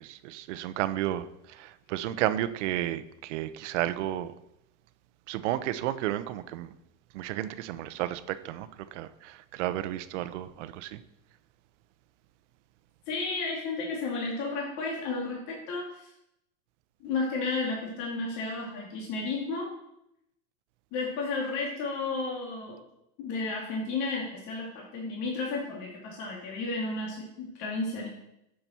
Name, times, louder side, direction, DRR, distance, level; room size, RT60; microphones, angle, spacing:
voice 1, 0.0-4.3 5.3-6.7 7.1-11.0, right 13 dB, 90° right, 13 dB, 0.9 m, -32 dB
voice 2, 13.1-16.1 17.0-19.7 20.9-22.8 23.2-28.1, left 3 dB, 55° left, -2 dB, 2.9 m, -32 dB
12.5 x 7.8 x 4.5 m, 0.83 s
supercardioid pair, 150°, 35 cm